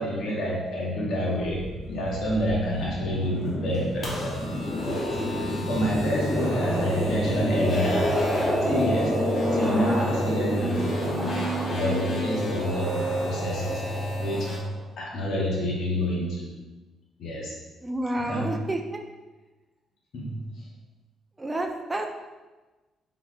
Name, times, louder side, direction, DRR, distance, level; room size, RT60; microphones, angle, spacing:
voice 1, 0.0-4.4 4.8-5.1 5.7-9.3 9.5-14.5 15.0-16.5 17.2-17.5 18.2-18.5 20.1-20.7, equal, 70° left, -3 dB, 0.9 m, -29 dB
sound 1, 1.5-14.8, equal, 5° left, 0.9 m, -28 dB
sound 2, 3.7-14.6, right 1 dB, 50° left, 1.1 m, -34 dB
voice 2, 17.8-19.0 21.4-22.1, right 1 dB, 15° right, 3 dB, 0.4 m, -29 dB
4.4 x 3.9 x 2.4 m, 1.2 s
cardioid pair, 90°, 0 cm